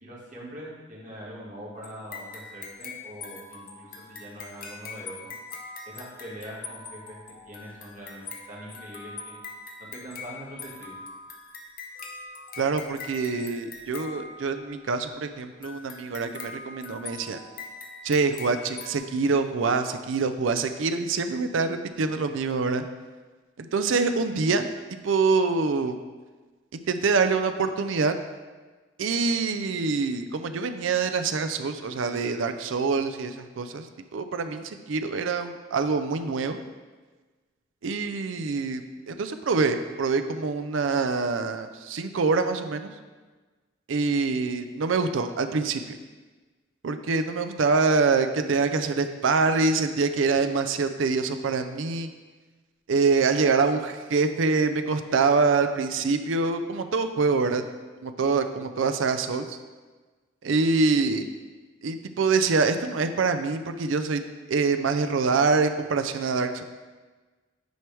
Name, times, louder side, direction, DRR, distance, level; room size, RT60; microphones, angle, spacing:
voice 1, 0.0-5.3 5.8-7.2 7.4-9.3 9.8-10.9, equal, 40° right, -6 dB, 1.8 m, -42 dB
sound 1, 1.7-14.9 15.6-19.0, left 4 dB, 45° left, 0.7 m, -42 dB
voice 2, 12.6-17.4 18.0-22.8 23.6-24.7 25.0-26.0 26.7-28.1 29.0-33.9 34.1-36.6 37.8-42.9 43.9-46.0 46.8-52.1 52.9-57.6 58.0-59.6 60.4-61.2 61.8-64.2 64.5-66.6, right 4 dB, 80° right, 9 dB, 0.5 m, -25 dB
9.2 x 4.6 x 3.4 m, 1.3 s
head